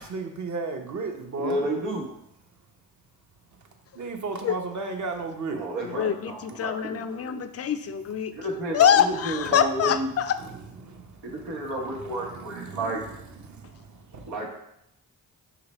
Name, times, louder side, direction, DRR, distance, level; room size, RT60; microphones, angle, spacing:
voice 1, 0.1-1.6 4.0-5.6 10.4-10.9 12.0-13.2, right 3 dB, 45° right, 4 dB, 0.8 m, -34 dB
voice 2, 1.4-2.1 5.5-7.4 8.3-10.1 11.2-13.0 14.3-14.5, right 1 dB, 85° right, -1 dB, 1.1 m, -31 dB
voice 3, 5.8-8.3 8.7-10.4, left 8 dB, 35° left, 11 dB, 0.4 m, -24 dB
4.9 x 3.3 x 3.0 m, 0.80 s
supercardioid pair, 45°, 41 cm